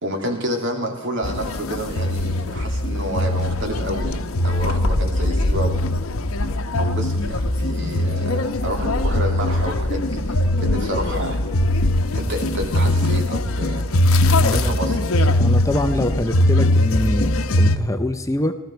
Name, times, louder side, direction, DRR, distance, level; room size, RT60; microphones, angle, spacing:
voice 1, 0.0-5.8 6.8-11.4 12.1-13.8 14.5-15.3, equal, 60° right, 3 dB, 2.8 m, -29 dB
sound 1, 1.2-17.8, left 1 dB, 75° left, 0.9 m, -21 dB
voice 2, 14.4-14.7 15.3-18.5, left 1 dB, 15° left, 8 dB, 0.6 m, -24 dB
19.5 x 14.0 x 4.5 m, 1.2 s
head